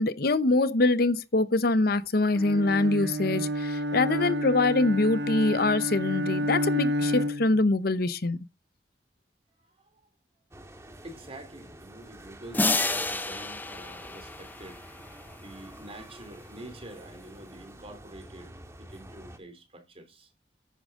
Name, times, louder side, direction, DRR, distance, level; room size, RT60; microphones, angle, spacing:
voice 1, 0.0-8.4, left 2 dB, 60° left, 0.8 m, -24 dB
Bowed string instrument, 2.3-7.6, equal, 65° right, 1.0 m, -30 dB
voice 2, 9.6-10.0 11.0-14.8 15.3-20.3, right 1 dB, 35° right, 3.5 m, -47 dB
sound 1, 10.5-19.4, right 1 dB, 15° right, 1.8 m, -48 dB
sound 2, 12.5-15.3, left 2 dB, 10° left, 0.7 m, -30 dB
10.5 x 8.8 x 3.7 m
head